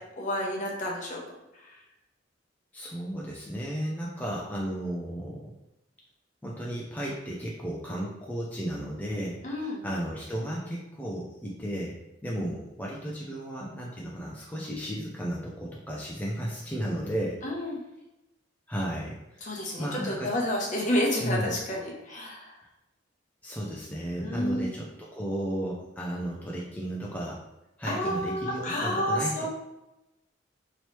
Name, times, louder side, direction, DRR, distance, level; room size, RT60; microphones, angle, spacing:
voice 1, 0.2-1.2 9.4-9.8 17.4-17.8 19.4-22.5 24.2-24.7 27.8-29.5, left 1 dB, 40° left, -2 dB, 0.8 m, -30 dB
voice 2, 2.7-5.5 6.4-9.4 9.8-17.4 18.7-19.5 19.8-20.3 21.2-21.5 23.4-27.4 27.8-29.5, equal, 10° left, -4 dB, 0.4 m, -34 dB
3.1 x 2.9 x 3.0 m, 0.93 s
head